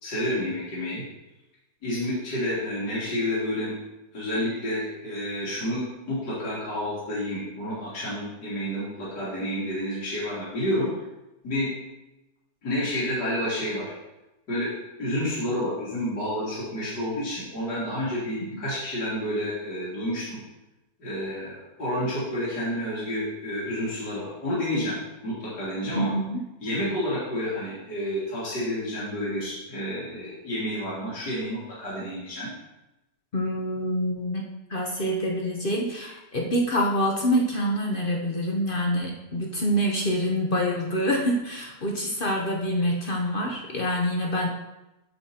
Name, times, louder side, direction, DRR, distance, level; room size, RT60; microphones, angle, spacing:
voice 1, 0.0-1.0 1.8-3.7 4.1-10.9 11.4-11.7 12.6-13.9 14.5-14.7 15.0-20.4 21.0-25.0 25.2-26.1 26.6-32.5, left 1 dB, 85° left, -8 dB, 2.9 m, -29 dB
voice 2, 25.9-26.4 33.3-44.5, equal, 45° left, 0 dB, 0.8 m, -26 dB
8.8 x 7.1 x 2.8 m, 0.97 s
omnidirectional pair, 1.8 m